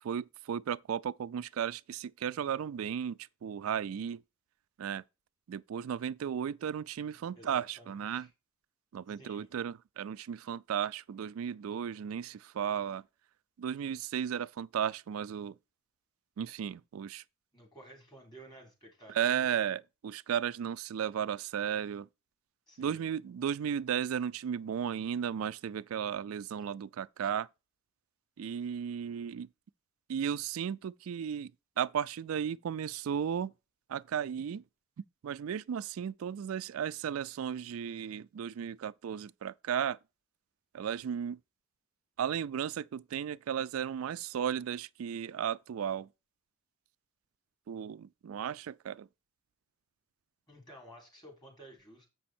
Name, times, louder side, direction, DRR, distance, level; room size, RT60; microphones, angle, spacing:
voice 1, 0.0-4.2 4.8-5.0 5.5-8.3 8.9-13.0 13.6-15.6 16.4-17.2 19.1-22.1 22.8-27.5 28.4-29.5 30.1-31.5 31.8-33.5 33.9-34.6 35.2-40.0 40.7-41.4 42.2-46.1 47.7-49.1, right 8 dB, 85° right, 0.4 m, -35 dB
voice 2, 7.4-8.3 9.1-9.5 17.5-19.5 22.7-23.1 50.5-52.1, right 1 dB, 20° left, 3.6 m, -54 dB
7.7 x 6.2 x 4.3 m
head